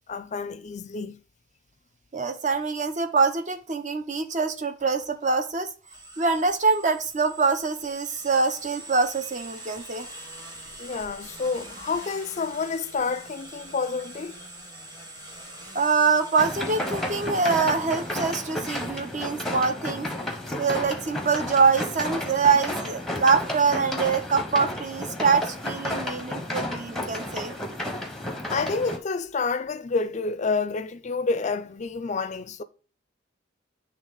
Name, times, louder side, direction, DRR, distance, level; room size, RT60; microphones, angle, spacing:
voice 1, 0.1-1.2 10.8-14.4 28.5-32.6, left 4 dB, 35° left, 0.4 m, -29 dB
voice 2, 2.1-5.7 6.2-10.1 15.7-20.1 20.6-27.5, right 4 dB, 40° right, 0.7 m, -24 dB
sound 1, 5.8-20.5, right 2 dB, 20° right, 1.5 m, -44 dB
sound 2, 16.4-29.0, left 1 dB, ahead, 0.8 m, -32 dB
8.2 x 3.3 x 3.8 m
head